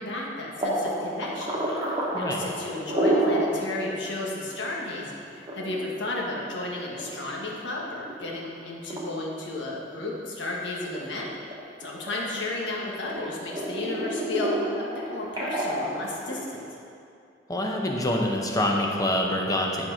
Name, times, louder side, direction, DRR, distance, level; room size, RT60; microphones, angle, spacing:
voice 1, 0.0-1.5 2.1-11.3 11.8-16.6, left 2 dB, 80° left, -3 dB, 1.4 m, -33 dB
sound 1, 0.6-3.5 3.9-4.0 4.4-4.5 5.3-7.5 8.0-8.5 8.9-9.0 9.6-10.5 10.8-12.7 13.1-16.6, right 1 dB, 25° right, 1.3 m, -29 dB
voice 2, 2.1-2.5 17.5-19.9, left 1 dB, 20° left, 0 dB, 0.8 m, -26 dB
10.5 x 4.4 x 4.9 m, 2.5 s
head